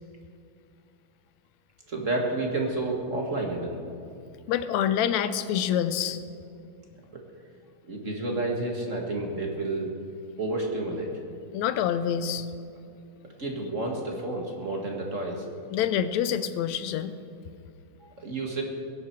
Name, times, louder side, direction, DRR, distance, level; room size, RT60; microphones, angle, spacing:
voice 1, 1.9-3.8 7.1-7.2 7.9-9.9 10.4-11.1 13.4-15.4 18.0-18.6, right 2 dB, 30° right, 0 dB, 1.6 m, -30 dB
voice 2, 4.5-6.2 11.5-12.5 15.7-17.1, left 9 dB, 80° left, 12 dB, 1.9 m, -26 dB
22.5 x 10.5 x 4.6 m, 2.4 s
omnidirectional pair, 3.4 m